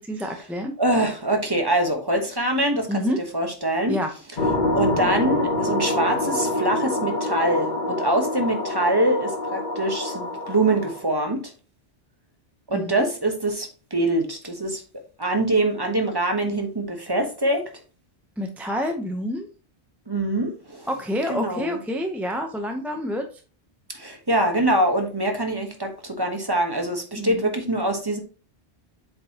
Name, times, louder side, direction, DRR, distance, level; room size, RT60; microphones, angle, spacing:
voice 1, 0.0-0.8 2.9-3.2 3.9-4.1 12.7-13.1 18.4-19.5 20.9-23.3 27.2-27.5, equal, ahead, 0.6 m, -28 dB
voice 2, 0.8-3.0 3.3-4.0 4.7-11.5 12.7-14.8 15.2-17.7 20.1-20.9 21.3-21.8 23.9-28.2, right 1 dB, 20° right, 1.1 m, -24 dB
sound 1, 4.4-11.0, left 1 dB, 50° left, 1.2 m, -26 dB
7.7 x 4.8 x 2.8 m
omnidirectional pair, 1.1 m